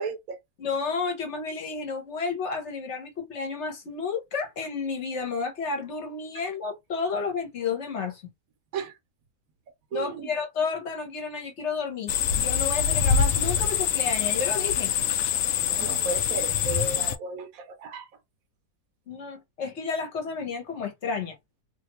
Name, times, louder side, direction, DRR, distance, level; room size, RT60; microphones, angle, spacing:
voice 1, 0.0-0.4 6.3-6.4 8.7-9.0 9.9-10.3 15.6-18.1, right 5 dB, 65° right, 1.1 m, -34 dB
voice 2, 0.6-8.2 9.9-14.9 19.1-21.3, left 5 dB, 50° left, 1.2 m, -31 dB
sound 1, 12.1-17.2, left 8 dB, 70° left, 0.8 m, -25 dB
2.9 x 2.6 x 3.0 m
omnidirectional pair, 1.7 m